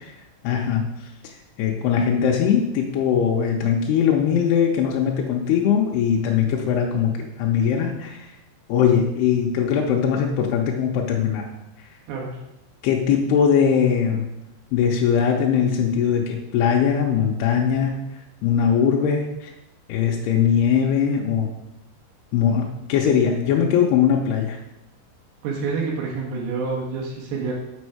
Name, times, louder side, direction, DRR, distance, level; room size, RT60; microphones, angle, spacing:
voice 1, 0.4-0.8 1.6-8.3 8.7-11.5 12.8-14.3 14.7-17.9 18.4-19.5 19.9-21.5 22.3-24.6, left 7 dB, 80° left, -1 dB, 2.5 m, -20 dB
voice 2, 12.1-12.4 25.4-27.5, right 4 dB, 70° right, -2 dB, 3.2 m, -27 dB
7.0 x 5.3 x 4.8 m, 0.91 s
omnidirectional pair, 5.2 m